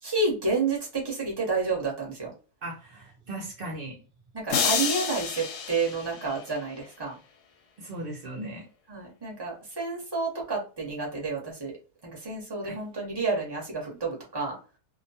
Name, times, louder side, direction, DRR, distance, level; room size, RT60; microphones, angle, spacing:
voice 1, 0.0-2.3 4.3-7.1 8.9-11.7 12.0-14.6, right 3 dB, 20° right, -2 dB, 0.8 m, -30 dB
voice 2, 2.6-4.0 7.8-8.7 12.6-12.8, right 1 dB, 50° right, 0 dB, 0.6 m, -37 dB
sound 1, 4.5-6.8, left 6 dB, 80° left, 1.1 m, -29 dB
2.6 x 2.1 x 2.7 m, 0.35 s
omnidirectional pair, 1.7 m